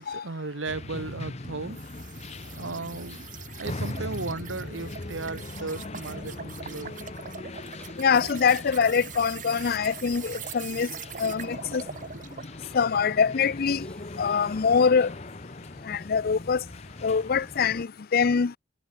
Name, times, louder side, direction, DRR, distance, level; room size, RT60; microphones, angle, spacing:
voice 1, 0.0-1.8 2.6-3.2 3.6-6.9 10.7-10.8 11.2-11.3 12.6-12.7, right 3 dB, 85° right, 1.3 m, -35 dB
sound 1, 0.7-17.8, left 2 dB, 35° left, 1.3 m, -40 dB
sound 2, 1.7-12.6, right 7 dB, 45° right, 1.2 m, -43 dB
sound 3, 7.3-14.7, equal, 5° left, 4.7 m, -57 dB
voice 2, 8.0-10.9 11.2-11.8 12.7-13.8 14.2-15.1 15.9-16.6 17.0-18.5, left 6 dB, 55° left, 0.5 m, -24 dB
head